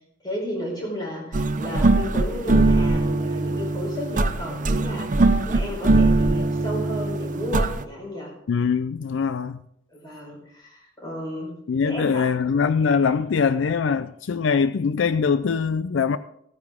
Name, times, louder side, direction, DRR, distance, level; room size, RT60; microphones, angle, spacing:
voice 1, 0.2-8.3 9.9-11.5 11.8-12.3, equal, 20° left, 4.9 m, -33 dB
sound 1, 1.3-7.8, right 2 dB, 40° right, 0.6 m, -21 dB
voice 2, 8.5-9.6 11.7-16.2, left 5 dB, 75° left, 0.4 m, -22 dB
16.5 x 9.5 x 3.6 m
head